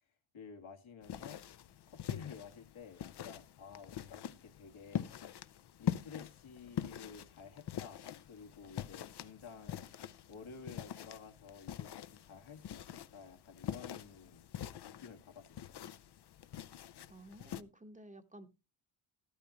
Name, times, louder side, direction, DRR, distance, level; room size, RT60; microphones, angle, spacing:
voice 1, 0.3-1.4 1.9-5.4 5.8-9.9 10.3-14.5 14.8-15.8, left 6 dB, 75° left, 1.9 m, -52 dB
sound 1, 1.0-17.6, left 10 dB, 55° left, 0.6 m, -44 dB
voice 2, 16.7-18.5, right 1 dB, 15° right, 1.0 m, -54 dB
13.0 x 12.5 x 2.9 m
cardioid pair, 100°, 49 cm